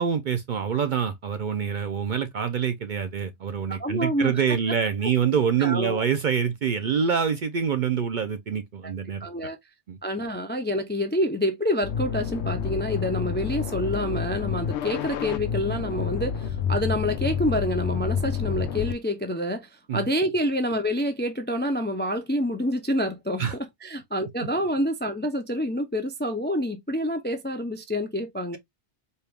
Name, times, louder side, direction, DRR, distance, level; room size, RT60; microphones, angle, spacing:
voice 1, 0.0-9.2 9.9-10.0 19.9-20.1 23.4-23.5, right 7 dB, 55° right, 0.6 m, -26 dB
voice 2, 3.7-4.3 5.6-6.0 9.2-9.6 10.0-28.6, equal, 15° left, 0.4 m, -27 dB
sound 1, 11.8-18.9, left 7 dB, 80° left, 0.9 m, -29 dB
4.4 x 2.3 x 3.3 m
omnidirectional pair, 1.2 m